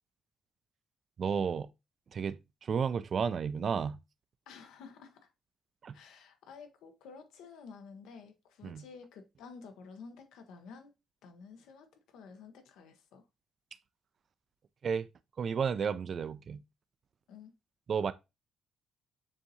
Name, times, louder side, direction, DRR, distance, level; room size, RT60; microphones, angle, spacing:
voice 1, 1.2-1.7 2.1-4.0 5.8-6.0 8.6-8.8 14.8-15.1 15.4-16.6 17.9-18.1, right 6 dB, 50° right, 0.3 m, -32 dB
voice 2, 4.5-5.3 5.9-10.9 11.2-13.2 17.3-17.5, left 5 dB, 90° left, 0.9 m, -51 dB
7.0 x 2.7 x 2.7 m
cardioid pair, 90°, 0 cm